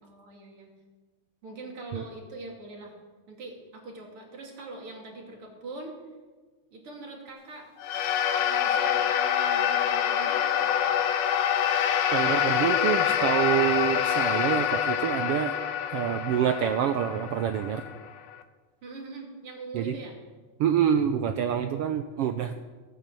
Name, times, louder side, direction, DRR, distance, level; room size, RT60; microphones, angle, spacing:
voice 1, 0.0-0.7 1.4-3.0 3.3-6.0 6.7-7.7 8.4-11.1 18.8-20.2, right 2 dB, 50° right, 0 dB, 3.3 m, -43 dB
sound 1, 7.8-18.4, left 9 dB, 70° left, 1.9 m, -26 dB
voice 2, 12.1-15.5 15.9-17.8 19.7-20.0 20.6-22.6, right 9 dB, 85° right, 8 dB, 1.3 m, -26 dB
16.5 x 8.8 x 7.7 m, 1.3 s
omnidirectional pair, 3.4 m